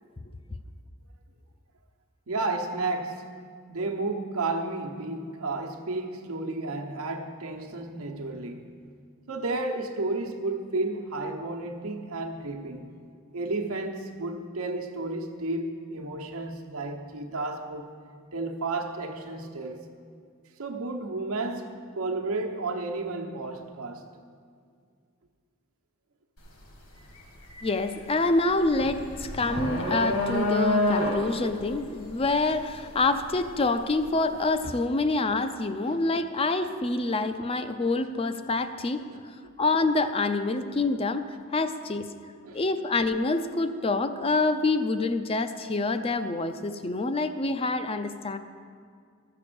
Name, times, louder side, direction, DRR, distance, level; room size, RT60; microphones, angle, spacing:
voice 1, 2.3-3.3 3.7-8.7 9.3-12.9 13.3-17.9 18.3-19.9 20.6-24.0 31.2-31.3 35.8-36.0 39.1-39.2 42.4-42.6, right 2 dB, 85° right, 3 dB, 1.0 m, -32 dB
sound 1, 26.4-26.6 27.0-34.0, left 1 dB, 65° left, 2.0 m, -28 dB
voice 2, 27.6-39.1 39.6-42.1 42.5-48.4, left 3 dB, 25° left, 10 dB, 0.4 m, -26 dB
13.5 x 6.7 x 6.9 m, 2.2 s
head